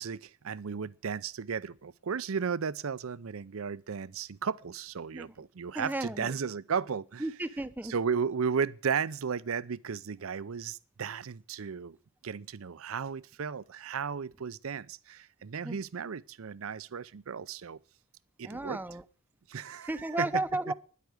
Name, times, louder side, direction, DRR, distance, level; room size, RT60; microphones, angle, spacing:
voice 1, 0.0-7.2 7.8-12.0 12.2-17.8 18.4-18.8 19.5-20.4, right 6 dB, 70° right, 0.5 m, -34 dB
voice 2, 5.7-6.3 7.2-7.9 15.6-15.8 18.4-19.0 19.9-20.7, right 2 dB, 10° right, 0.6 m, -34 dB
10.5 x 8.3 x 9.5 m
head